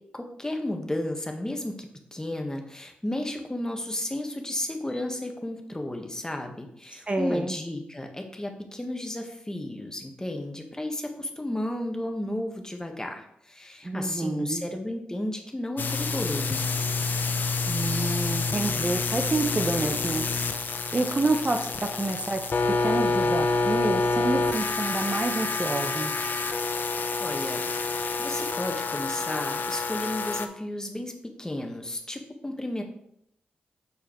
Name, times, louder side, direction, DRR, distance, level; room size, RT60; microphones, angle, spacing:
voice 1, 0.1-16.6 27.2-27.6 27.9-32.8, left 1 dB, 15° left, 3 dB, 1.5 m, -33 dB
voice 2, 7.1-7.6 13.8-14.7 17.7-20.3 20.9-22.4 22.8-26.1, right 2 dB, 30° right, 5 dB, 0.9 m, -28 dB
sound 1, 15.8-30.5, left 3 dB, 60° left, 0.7 m, -28 dB
6.8 x 4.7 x 4.6 m, 0.75 s
cardioid pair, 50°, 4 cm